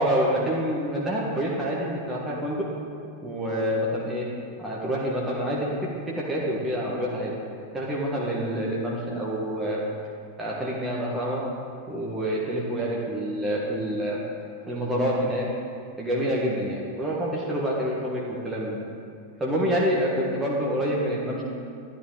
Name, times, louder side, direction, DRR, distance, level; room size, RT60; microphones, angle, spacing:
voice 1, 0.0-2.7 3.2-4.3 4.6-5.8 6.1-7.3 7.7-9.8 10.4-11.5 11.9-14.2 14.7-15.5 16.0-18.8 19.4-21.4, equal, 10° right, -5 dB, 1.6 m, -27 dB
12.0 x 10.0 x 4.0 m, 2.3 s
figure-of-eight pair, 90°, 0 cm